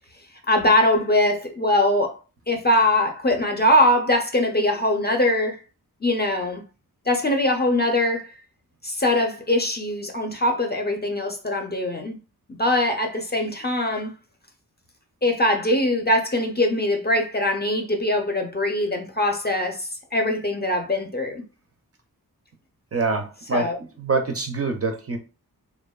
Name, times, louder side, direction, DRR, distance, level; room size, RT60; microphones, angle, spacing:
voice 1, 0.5-2.2 2.5-5.6 6.0-6.6 7.1-8.3 8.8-12.2 12.6-14.1 15.2-21.4 23.5-23.8, left 1 dB, 30° left, 0.4 m, -22 dB
voice 2, 22.9-23.7 24.0-25.2, right 3 dB, 40° right, 0.4 m, -25 dB
2.7 x 2.2 x 2.2 m
wide cardioid pair, 85°, 37 cm